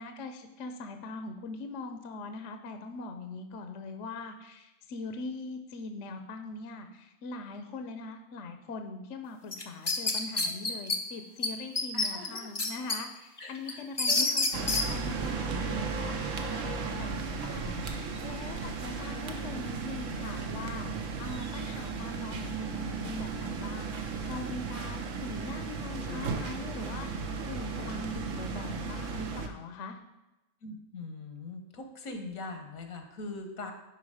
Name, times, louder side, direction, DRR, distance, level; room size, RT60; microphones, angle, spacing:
voice 1, 0.0-30.0, left 3 dB, 65° left, 7 dB, 1.0 m, -42 dB
sound 1, 9.5-11.0 11.4-11.5 11.8-13.0 13.4-14.8, left 3 dB, 25° left, 0.6 m, -28 dB
voice 2, 11.9-12.5 13.4-14.7 19.0-19.6 26.0-26.2 30.6-33.7, left 2 dB, 85° left, 6 dB, 1.6 m, -42 dB
sound 2, 14.5-29.5, right 4 dB, 70° right, 1.2 m, -35 dB
11.0 x 4.7 x 4.9 m, 1.0 s
omnidirectional pair, 1.4 m